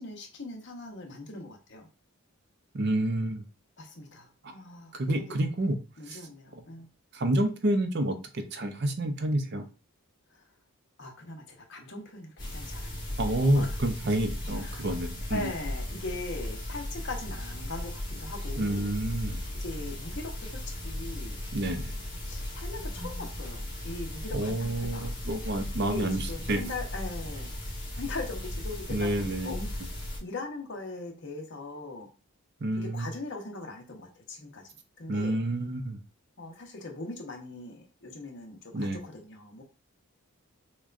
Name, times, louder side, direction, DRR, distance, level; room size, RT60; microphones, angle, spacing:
voice 1, 0.0-1.9 3.8-5.5 6.0-6.9 10.3-10.5 11.0-13.7 14.5-14.8 15.3-18.9 19.5-21.4 22.3-25.1 25.9-27.5 27.9-29.8 30.2-32.1 32.7-34.7 35.0-35.4 36.4-39.6, left 2 dB, 55° left, 2 dB, 0.8 m, -40 dB
voice 2, 2.7-3.4 4.9-5.8 6.1-6.2 7.1-9.6 13.2-15.5 18.6-19.4 21.5-21.9 24.3-26.6 28.9-29.5 32.6-33.1 35.1-36.0 38.7-39.0, right 1 dB, 50° right, 7 dB, 0.6 m, -29 dB
sound 1, 12.4-30.2, left 1 dB, 35° left, 1.6 m, -36 dB
6.1 x 2.2 x 2.5 m, 0.33 s
head